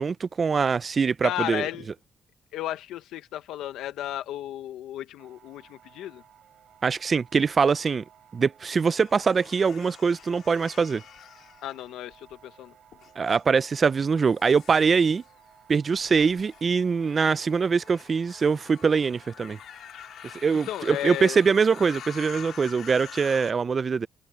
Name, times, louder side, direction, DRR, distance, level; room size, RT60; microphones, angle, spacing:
voice 1, 0.0-1.6 6.8-8.0 8.3-11.0 13.2-15.2 15.7-19.6 20.4-24.1, right 5 dB, 40° right, 0.4 m, -23 dB
voice 2, 1.2-1.9 2.5-6.2 11.6-12.7 20.7-21.4, left 13 dB, 85° left, 0.8 m, -34 dB
sound 1, 5.2-23.5, right 9 dB, 70° right, 3.2 m, -57 dB
sound 2, 8.9-12.3 12.9-13.4 14.1-23.5, left 10 dB, 70° left, 3.3 m, -46 dB
cardioid pair, 90°, 0 cm